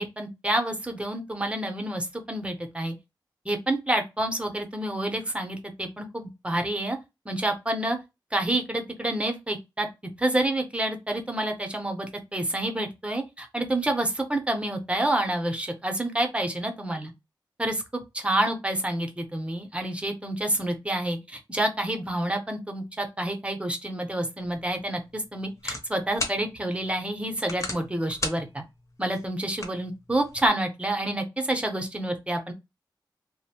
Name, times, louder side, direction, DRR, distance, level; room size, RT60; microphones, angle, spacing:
voice 1, 0.0-2.9 3.4-7.0 7.3-8.0 8.3-9.9 10.2-17.1 17.6-17.8 18.1-28.6 29.0-32.5, right 1 dB, 15° right, 0.7 m, -28 dB
sound 1, 24.4-30.5, left 2 dB, 40° left, 0.8 m, -38 dB
2.6 x 2.1 x 2.8 m
wide cardioid pair, 60°, 8 cm